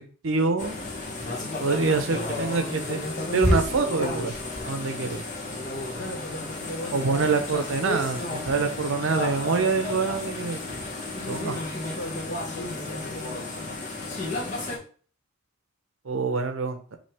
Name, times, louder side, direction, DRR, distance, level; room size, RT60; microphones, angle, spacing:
voice 1, 0.2-0.7 1.6-3.0 3.3-4.3 4.6-5.2 6.9-10.6 11.3-11.5 16.0-17.0, right 4 dB, 70° right, 7 dB, 0.7 m, -25 dB
sound 1, 0.6-14.8, left 2 dB, 40° left, 1.1 m, -32 dB
voice 2, 5.9-7.3 11.1-13.8, left 1 dB, 65° left, 2 dB, 1.2 m, -38 dB
5.7 x 2.8 x 3.4 m, 0.41 s
head